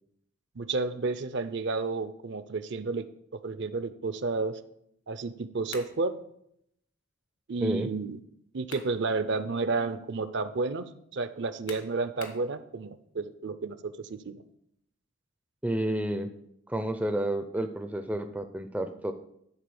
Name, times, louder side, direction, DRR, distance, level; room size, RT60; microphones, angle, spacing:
voice 1, 0.6-3.1 3.4-4.6 5.1-6.1 7.5-8.2 8.5-14.4, right 3 dB, 55° right, 12 dB, 0.5 m, -31 dB
sound 1, 5.7-6.0 8.4-9.0 9.5-9.6 11.7-12.5, left 4 dB, 80° left, 1.6 m, -45 dB
voice 2, 15.6-16.3 16.7-19.1, right 1 dB, 5° right, 7 dB, 0.4 m, -30 dB
11.0 x 4.1 x 6.9 m, 0.74 s
head